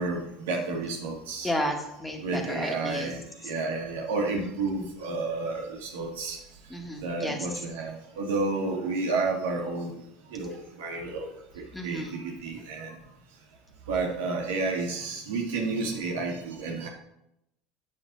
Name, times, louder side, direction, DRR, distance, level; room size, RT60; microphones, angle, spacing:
voice 1, 0.0-1.5 2.2-3.2 3.4-6.4 7.0-10.0 10.3-11.3 11.8-12.9 13.9-16.9, right 3 dB, 80° right, -1 dB, 1.9 m, -31 dB
voice 2, 1.4-3.1 6.7-7.5 11.7-12.1, equal, 15° left, 2 dB, 1.9 m, -32 dB
8.8 x 6.4 x 4.0 m, 0.84 s
hypercardioid pair, 85°, 0 cm